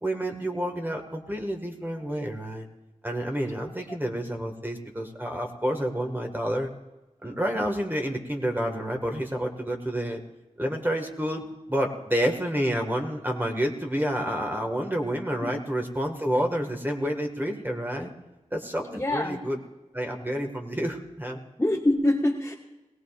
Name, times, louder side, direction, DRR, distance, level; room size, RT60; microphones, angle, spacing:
voice 1, 0.0-2.7 3.0-6.7 7.2-10.2 10.6-18.1 18.5-19.6 19.9-21.4, equal, 15° right, 3 dB, 1.8 m, -29 dB
voice 2, 19.0-19.4 21.6-22.5, left 1 dB, 20° left, -4 dB, 1.6 m, -25 dB
21.0 x 17.0 x 2.5 m, 1.1 s
cardioid pair, 40°, 13 cm